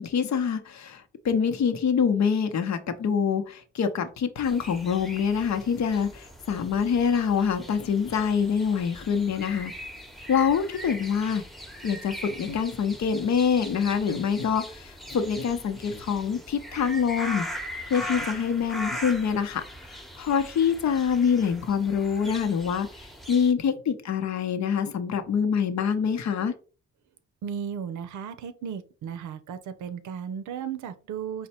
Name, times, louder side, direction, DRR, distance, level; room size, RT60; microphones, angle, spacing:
voice 1, 0.0-9.7 10.3-11.4 11.8-17.6 17.9-19.6 20.2-22.9 23.3-26.5, left 7 dB, 60° left, 0.8 m, -25 dB
sound 1, 4.4-23.5, equal, ahead, 0.9 m, -40 dB
voice 2, 27.4-31.5, right 7 dB, 70° right, 0.6 m, -35 dB
4.1 x 2.1 x 4.2 m
supercardioid pair, 50°, 30 cm